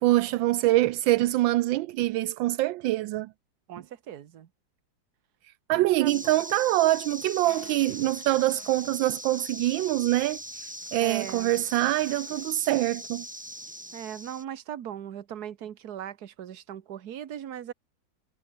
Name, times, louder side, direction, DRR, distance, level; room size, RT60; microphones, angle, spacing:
voice 1, 0.0-3.3 5.7-10.4 10.9-13.3, right 16 dB, 85° right, 1.3 m, -24 dB
voice 2, 3.7-4.5 5.7-6.3 11.0-11.5 13.9-17.7, right 10 dB, 60° right, 1.6 m, -39 dB
sound 1, 6.1-14.4, equal, 5° right, 2.9 m, -41 dB
sound 2, 7.4-12.6, left 5 dB, 40° left, 2.0 m, -55 dB
omnidirectional pair, 2.1 m